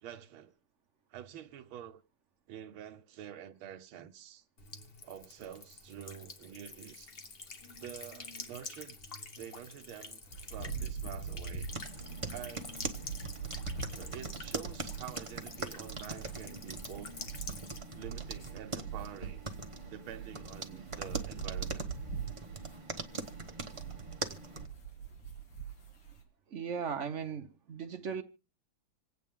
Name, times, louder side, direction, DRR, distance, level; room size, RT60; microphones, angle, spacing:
voice 1, 0.0-0.5 1.1-2.0 2.5-4.4 5.0-7.1 7.8-9.0 9.4-10.2 10.5-11.7 12.3-12.8 13.7-17.2 17.9-19.5 19.9-21.9, right 10 dB, 90° right, 1.8 m, -47 dB
Buzz / Water tap faucet / Trickle dribble, 4.6-17.8, left 3 dB, 35° left, 1.0 m, -48 dB
sound 1, 10.2-26.2, right 6 dB, 75° left, 3.3 m, -43 dB
sound 2, 11.7-24.7, right 3 dB, 25° right, 0.6 m, -42 dB
voice 2, 26.5-28.2, right 6 dB, 50° right, 0.9 m, -37 dB
27.0 x 9.0 x 3.6 m
omnidirectional pair, 2.2 m